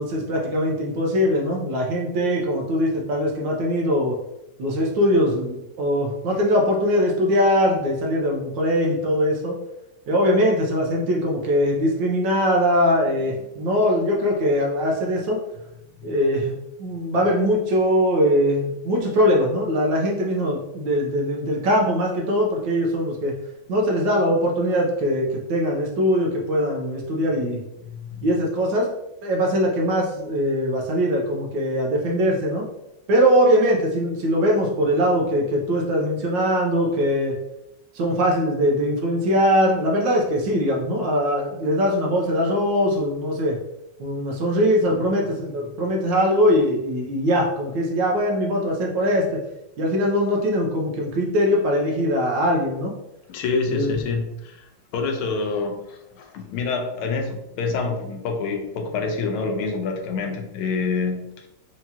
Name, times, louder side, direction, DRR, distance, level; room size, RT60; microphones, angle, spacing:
voice 1, 0.0-4.2 4.6-9.6 10.1-15.4 16.0-16.5 16.8-23.3 23.7-27.6 28.2-28.9 29.2-32.6 33.1-37.3 37.9-43.6 44.0-49.4 49.8-52.9 53.7-53.9, equal, 70° right, 0 dB, 1.3 m, -21 dB
voice 2, 27.8-28.3 44.9-45.0 53.3-61.5, left 4 dB, 80° left, 4 dB, 1.5 m, -27 dB
4.6 x 2.9 x 2.8 m, 0.87 s
omnidirectional pair, 2.3 m